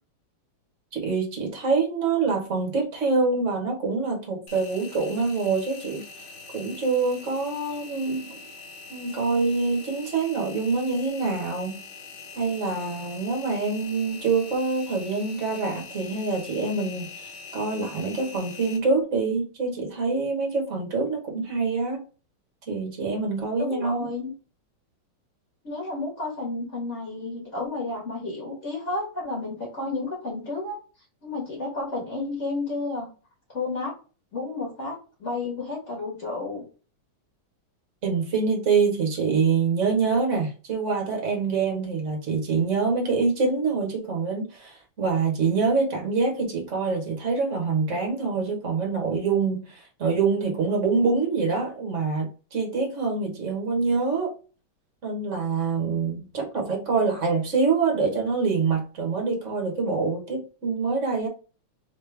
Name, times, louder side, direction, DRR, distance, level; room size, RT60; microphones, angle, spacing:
voice 1, 0.9-6.0 6.5-8.4 8.9-11.8 12.4-22.0 22.7-24.1 38.0-54.3 55.0-61.3, right 4 dB, 40° right, 1.3 m, -25 dB
Engine, 4.5-18.8, left 4 dB, 75° left, 1.8 m, -43 dB
voice 2, 23.6-24.3 25.6-30.8 31.2-33.1 33.5-33.9 34.3-36.6, left 3 dB, 35° left, 1.7 m, -31 dB
3.9 x 3.1 x 3.3 m
omnidirectional pair, 2.4 m